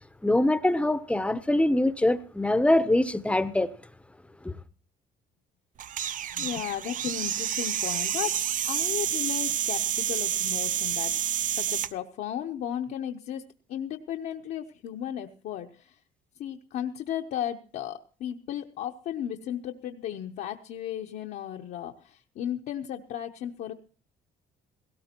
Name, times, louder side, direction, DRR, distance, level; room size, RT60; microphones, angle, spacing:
voice 1, 0.2-3.7 4.4-4.5, left 1 dB, 5° left, 0.7 m, -23 dB
sound 1, 5.8-11.9, right 10 dB, 50° right, 0.6 m, -29 dB
voice 2, 6.3-13.4 13.7-16.0 16.4-23.7, left 10 dB, 65° left, 0.8 m, -35 dB
17.5 x 17.0 x 2.9 m
cardioid pair, 110°, 17 cm